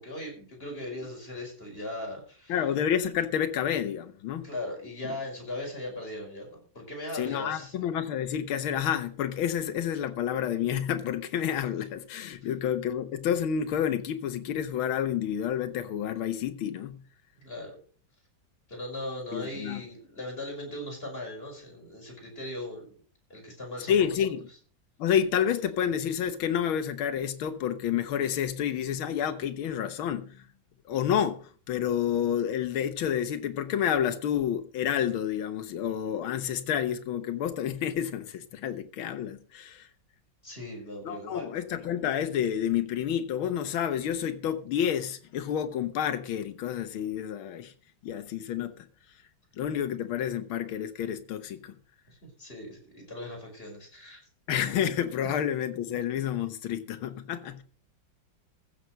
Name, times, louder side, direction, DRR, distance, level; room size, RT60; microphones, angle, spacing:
voice 1, 0.0-2.6 4.4-7.9 12.4-12.5 17.4-17.8 18.7-22.9 23.3-24.1 40.4-41.5 52.1-54.2, left 1 dB, 25° left, 5.6 m, -39 dB
voice 2, 2.5-4.5 5.0-5.1 7.1-17.0 19.3-19.8 23.9-24.4 25.0-30.4 30.9-39.9 41.1-47.7 48.0-48.9 49.6-51.8 54.5-57.6, left 9 dB, 85° left, 1.9 m, -29 dB
15.0 x 7.1 x 6.4 m
omnidirectional pair, 2.2 m